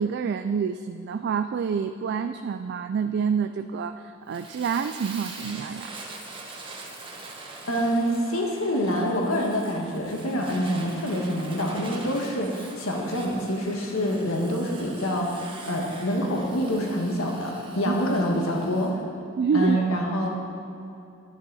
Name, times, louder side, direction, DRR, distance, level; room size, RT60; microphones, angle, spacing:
voice 1, 0.0-5.9 17.9-18.0 19.4-19.8, right 6 dB, 55° right, 9 dB, 0.3 m, -27 dB
Fire, 4.3-18.9, right 3 dB, 25° right, 1.2 m, -43 dB
voice 2, 7.7-19.0 19.5-20.3, equal, 90° left, 0 dB, 1.6 m, -26 dB
11.0 x 10.5 x 4.1 m, 2.7 s
head